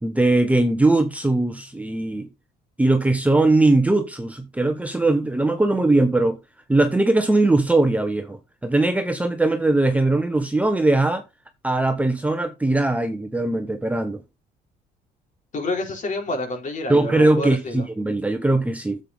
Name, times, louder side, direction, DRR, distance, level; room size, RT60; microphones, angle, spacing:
voice 1, 0.0-2.3 2.8-6.4 6.7-11.2 11.6-14.2 16.9-19.0, right 2 dB, 10° right, 1.2 m, -20 dB
voice 2, 15.5-17.9, left 2 dB, 45° left, 4.1 m, -28 dB
9.5 x 7.9 x 3.6 m
cardioid pair, 110°, 17 cm